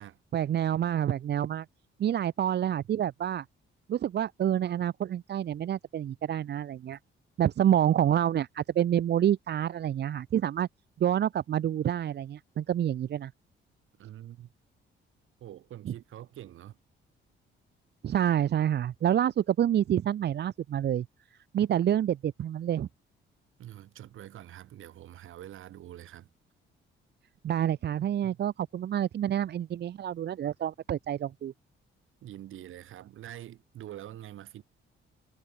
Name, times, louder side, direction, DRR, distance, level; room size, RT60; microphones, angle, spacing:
voice 1, 0.3-1.7 2.0-3.4 3.9-7.0 7.4-10.7 11.0-13.3 15.8-15.9 18.0-21.1 21.5-22.9 27.4-31.5, right 10 dB, 55° right, 1.0 m, -28 dB
voice 2, 14.0-14.5 15.4-16.8 23.6-26.3 28.2-28.4 32.2-34.6, right 12 dB, 80° right, 6.2 m, -45 dB
cardioid pair, 125°, 21 cm